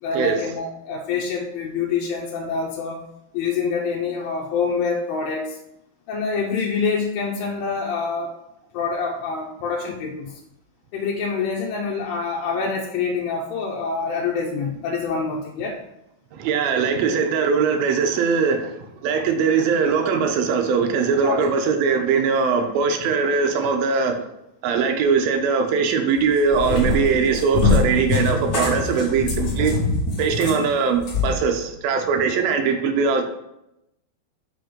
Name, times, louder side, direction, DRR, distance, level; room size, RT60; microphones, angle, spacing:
voice 1, 0.0-3.0 3.3-5.6 6.1-8.4 8.7-10.4 10.9-15.8 21.2-21.4, left 5 dB, 75° left, -1 dB, 2.3 m, -26 dB
voice 2, 16.3-24.2 24.6-29.7 30.2-33.2, right 5 dB, 75° right, 6 dB, 2.3 m, -21 dB
Cat, 26.2-31.3, left 3 dB, 40° left, 1.6 m, -23 dB
5.9 x 5.3 x 5.1 m, 0.85 s
omnidirectional pair, 4.5 m